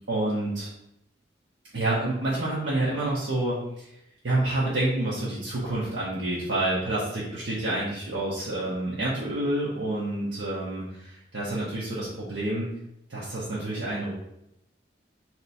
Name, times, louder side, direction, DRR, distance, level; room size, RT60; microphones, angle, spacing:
voice 1, 0.1-0.7 1.7-3.9 4.2-12.7 13.1-14.1, right 1 dB, 70° right, -7 dB, 0.9 m, -28 dB
3.3 x 3.0 x 4.0 m, 0.81 s
head